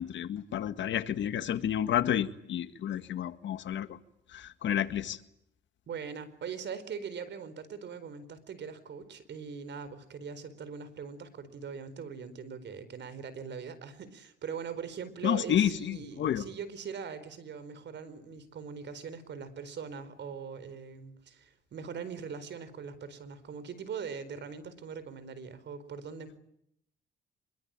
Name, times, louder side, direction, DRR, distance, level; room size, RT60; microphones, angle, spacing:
voice 1, 0.0-4.0 4.3-5.2 15.2-16.5, left 10 dB, 70° left, 1.9 m, -30 dB
voice 2, 5.9-26.4, right 6 dB, 65° right, 4.5 m, -41 dB
25.5 x 23.5 x 9.0 m
cardioid pair, 90°, 20 cm